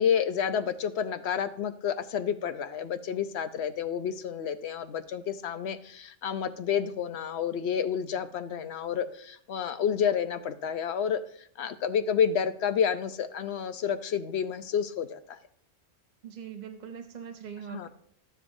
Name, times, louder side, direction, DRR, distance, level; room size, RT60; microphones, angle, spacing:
voice 1, 0.0-15.4 17.7-17.9, left 8 dB, 70° left, 11 dB, 0.9 m, -30 dB
voice 2, 16.2-17.9, right 8 dB, 45° right, 6 dB, 0.7 m, -41 dB
12.0 x 10.0 x 2.7 m, 0.65 s
omnidirectional pair, 1.1 m